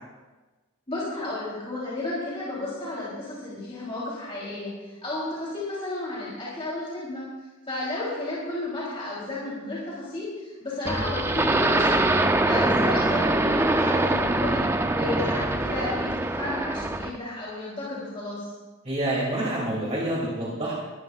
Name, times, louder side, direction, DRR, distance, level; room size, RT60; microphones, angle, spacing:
voice 1, 0.9-7.2 7.7-18.5, left 2 dB, 25° left, -7 dB, 3.3 m, -33 dB
sound 1, 10.8-17.2, right 2 dB, 10° right, 0.4 m, -23 dB
voice 2, 18.8-20.7, right 1 dB, 30° right, -5 dB, 2.7 m, -27 dB
20.5 x 13.5 x 2.4 m, 1.2 s
head